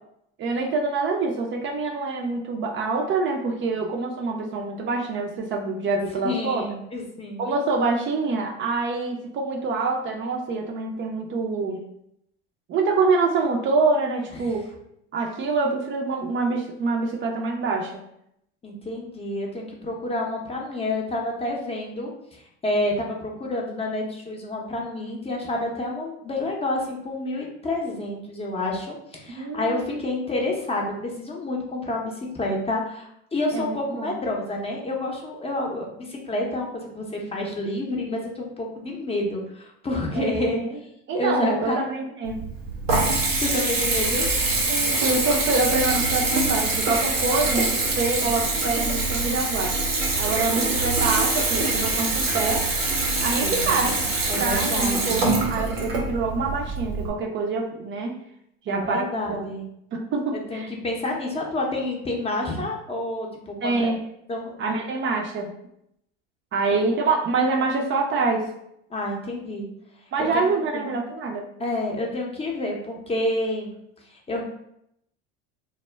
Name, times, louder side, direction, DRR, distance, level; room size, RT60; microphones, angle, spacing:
voice 1, 0.4-6.7 7.4-11.8 12.7-14.7 15.1-18.0 29.3-30.0 33.5-34.2 40.1-40.8 41.1-42.4 44.7-49.8 50.2-52.7 53.2-53.9 54.4-58.2 58.7-59.1 59.9-60.7 63.6-64.0 64.6-65.5 66.5-68.5 70.1-71.5, right 3 dB, 40° right, 1 dB, 0.4 m, -25 dB
voice 2, 6.2-7.5 14.5-14.6 18.6-40.6 41.1-41.8 43.4-44.3 53.4-53.6 53.8-53.9 54.3-55.2 58.7-59.7 60.3-63.9 64.3-64.5 68.9-69.7 70.2-70.5 70.7-70.9 71.6-73.8 74.1-74.4, left 2 dB, 20° left, -1 dB, 0.6 m, -29 dB
Water tap faucet / Bathtub (filling or washing) / Trickle dribble, 42.2-57.1, right 3 dB, 90° right, 0.8 m, -24 dB
2.1 x 2.0 x 3.2 m, 0.77 s
hypercardioid pair, 85°, 30 cm